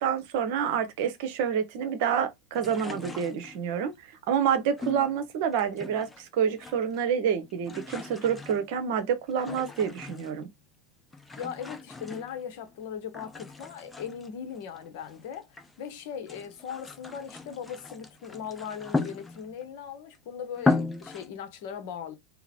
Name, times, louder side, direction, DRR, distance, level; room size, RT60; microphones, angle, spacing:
voice 1, 0.0-3.9 4.3-10.5, right 8 dB, 50° right, 0.8 m, -28 dB
sound 1, 2.5-3.8 4.8-6.2 6.5-7.1 7.4-10.5 11.1-12.7 13.1-15.8 16.1-19.7 20.1-20.2 20.5-21.3, left 3 dB, 10° left, 0.5 m, -36 dB
voice 2, 11.4-15.5 15.8-22.1, left 8 dB, 50° left, 0.8 m, -39 dB
3.9 x 2.0 x 4.2 m
figure-of-eight pair, 90°, 0 cm